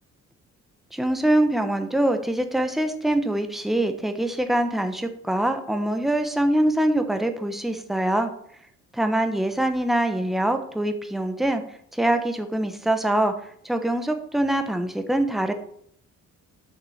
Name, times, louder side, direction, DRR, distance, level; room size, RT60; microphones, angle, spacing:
voice 1, 0.9-8.3 9.0-11.6 11.9-13.3 13.6-15.5, right 1 dB, ahead, 6 dB, 0.9 m, -24 dB
9.3 x 6.1 x 4.2 m, 0.66 s
cardioid pair, 90°, 30 cm